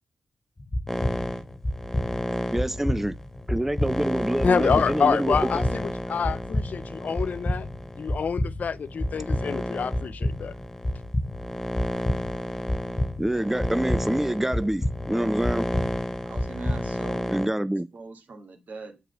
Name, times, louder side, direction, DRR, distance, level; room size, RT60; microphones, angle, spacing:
sound 1, 0.6-17.2, left 1 dB, 30° left, 0.8 m, -31 dB
sound 2, 0.9-8.2 8.9-17.5, left 1 dB, 10° left, 1.5 m, -32 dB
voice 1, 2.5-3.2 3.5-5.6 13.2-15.8 17.3-17.9, right 1 dB, 10° right, 0.5 m, -26 dB
voice 2, 4.4-7.7 8.0-10.5, left 6 dB, 70° left, 0.5 m, -27 dB
voice 3, 16.2-19.1, right 3 dB, 70° right, 2.2 m, -42 dB
6.8 x 4.9 x 5.4 m
supercardioid pair, 40°, 3 cm